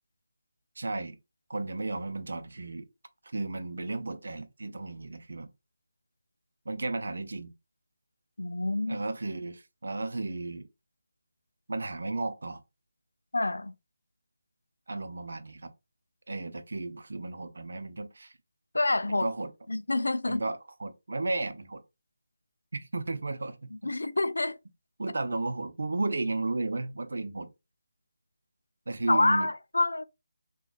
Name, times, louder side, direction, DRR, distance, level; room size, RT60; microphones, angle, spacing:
voice 1, 0.8-1.2 1.5-2.9 3.2-5.5 6.7-7.5 8.9-10.7 11.7-12.6 14.9-15.7 16.3-18.3 19.1-19.5 20.3-21.8 22.7-23.9 25.0-27.5 28.9-29.5, right 2 dB, 70° right, 0.6 m, -34 dB
voice 2, 8.4-9.0 13.3-13.7 18.7-19.2 19.7-20.4 23.8-24.6 29.1-30.1, left 2 dB, 85° left, 0.4 m, -27 dB
3.7 x 2.4 x 2.4 m
figure-of-eight pair, 160°, 0 cm